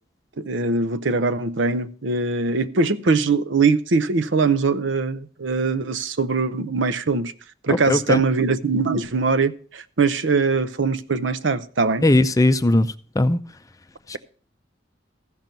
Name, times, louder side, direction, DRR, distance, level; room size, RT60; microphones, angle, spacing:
voice 1, 0.4-7.3 7.6-12.0, right 4 dB, 70° right, 0.7 m, -22 dB
voice 2, 7.7-8.2 12.0-13.4 14.1-14.2, left 2 dB, 20° left, 0.5 m, -19 dB
15.0 x 6.0 x 5.3 m
head